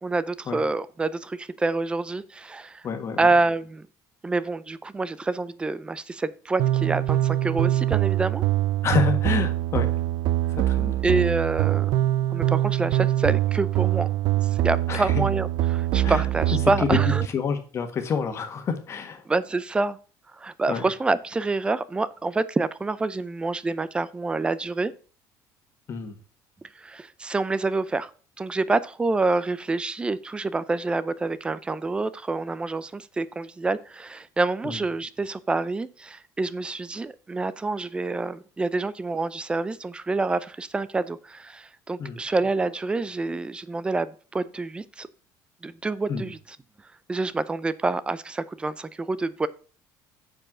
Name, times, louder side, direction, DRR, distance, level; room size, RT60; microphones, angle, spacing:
voice 1, 0.0-2.9 3.2-3.9 4.2-8.4 11.0-14.1 14.4-17.2 19.3-20.0 20.3-24.9 26.7-28.1 28.4-45.1 45.6-46.6 47.1-49.5, right 3 dB, 15° right, 0.5 m, -27 dB
voice 2, 2.8-3.3 8.8-9.9 10.5-11.0 14.9-15.1 16.0-16.2 17.3-19.2 20.7-20.8 25.9-26.1 34.6-34.8 42.0-42.2 46.1-46.3, left 5 dB, 35° left, 1.5 m, -28 dB
sound 1, 6.6-17.2, right 14 dB, 65° right, 0.5 m, -23 dB
7.5 x 4.7 x 6.1 m
cardioid pair, 135°, 8 cm